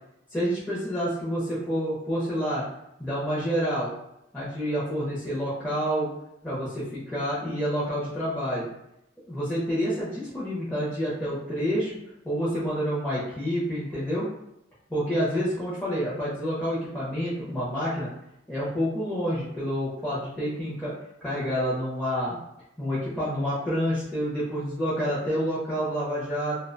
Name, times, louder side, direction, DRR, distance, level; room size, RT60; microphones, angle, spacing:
voice 1, 0.3-2.6 3.0-3.9 4.3-6.1 6.4-8.7 9.3-12.0 12.2-14.3 14.9-18.1 18.5-21.0 21.2-22.4 22.8-26.6, equal, 5° left, -10 dB, 0.5 m, -28 dB
2.3 x 2.1 x 2.5 m, 0.83 s
head